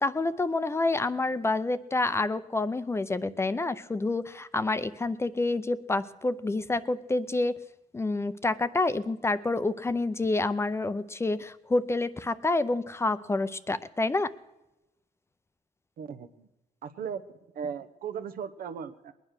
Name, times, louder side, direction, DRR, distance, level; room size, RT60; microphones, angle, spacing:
voice 1, 0.0-7.6 7.9-14.3, left 2 dB, 15° left, 14 dB, 0.5 m, -28 dB
voice 2, 16.0-16.5 16.8-17.2 17.5-19.1, right 7 dB, 75° right, 10 dB, 1.0 m, -37 dB
20.0 x 9.6 x 6.6 m, 0.94 s
cardioid pair, 120°, 15 cm